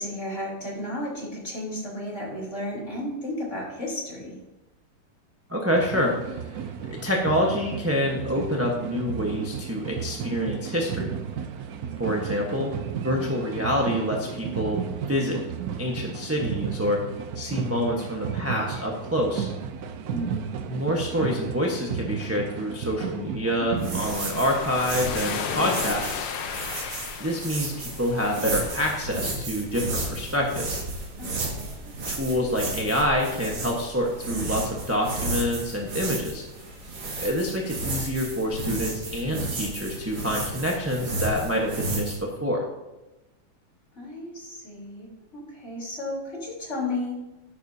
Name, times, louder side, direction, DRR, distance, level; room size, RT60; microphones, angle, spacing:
voice 1, 0.0-4.4 20.1-20.5 31.2-31.9 44.0-45.1 45.3-47.2, left 1 dB, 35° left, -3 dB, 4.0 m, -33 dB
voice 2, 5.5-6.1 6.8-11.1 12.0-14.8 15.1-15.4 15.8-17.0 17.3-19.5 20.7-26.3 27.2-30.8 32.1-36.4 37.2-42.6, equal, 10° right, -2 dB, 1.0 m, -27 dB
sound 1, 5.7-24.1, right 8 dB, 65° right, 1.0 m, -34 dB
sound 2, 23.8-42.2, right 2 dB, 85° right, 3.2 m, -33 dB
sound 3, 24.0-29.1, left 7 dB, 85° left, 1.8 m, -34 dB
13.5 x 10.5 x 2.8 m, 1.0 s
omnidirectional pair, 2.3 m